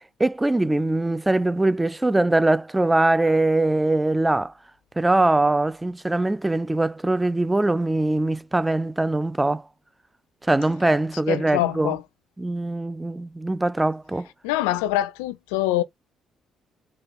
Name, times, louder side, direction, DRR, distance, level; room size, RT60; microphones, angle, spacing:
voice 1, 0.2-4.5 5.0-9.6 10.5-11.9 12.4-14.3, right 2 dB, 15° right, 0.3 m, -22 dB
voice 2, 11.3-12.0 14.4-15.8, left 14 dB, 70° left, 0.4 m, -24 dB
4.4 x 2.3 x 4.2 m
figure-of-eight pair, 45°, 0 cm